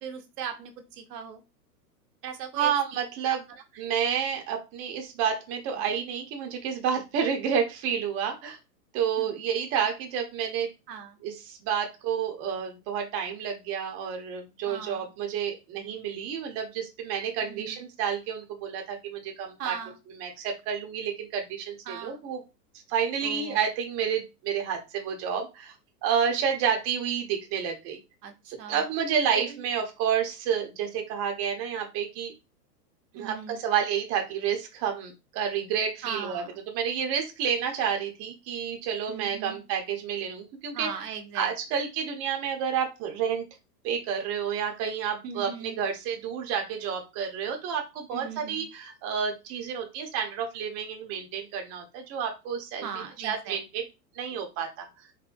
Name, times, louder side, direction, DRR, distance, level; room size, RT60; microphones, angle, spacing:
voice 1, 0.0-1.4 2.2-3.0 9.2-9.3 10.9-11.2 14.7-15.1 17.4-17.8 19.6-20.0 21.9-22.2 23.2-23.6 28.2-28.8 29.3-29.5 33.2-33.6 36.0-36.6 39.1-39.6 40.7-41.5 45.2-45.8 48.1-48.7 52.8-53.6, right 7 dB, 70° right, 5 dB, 0.8 m, -39 dB
voice 2, 2.5-3.5 3.8-8.6 8.9-10.7 11.2-19.8 20.2-22.4 22.9-25.7 26.0-28.0 28.7-32.3 33.1-41.0 41.3-43.4 43.8-53.8 54.1-54.9, right 7 dB, 30° right, 3 dB, 0.7 m, -30 dB
3.8 x 2.1 x 2.5 m, 0.26 s
hypercardioid pair, 115°, 49 cm